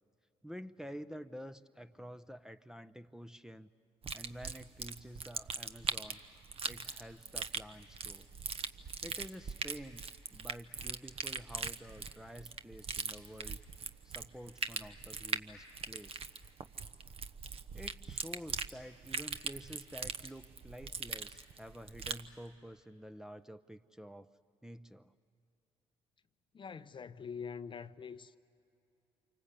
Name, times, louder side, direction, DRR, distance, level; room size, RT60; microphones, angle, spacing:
voice 1, 0.4-3.7 4.1-6.2 6.7-8.3 9.0-13.6 14.0-16.2 17.7-24.3 24.6-25.1, equal, 5° right, 0.7 m, -49 dB
sound 1, 4.0-22.3, right 5 dB, 45° right, 1.0 m, -41 dB
voice 2, 26.5-28.4, left 6 dB, 35° left, 0.7 m, -44 dB
27.5 x 25.0 x 8.3 m
supercardioid pair, 60°, 14 cm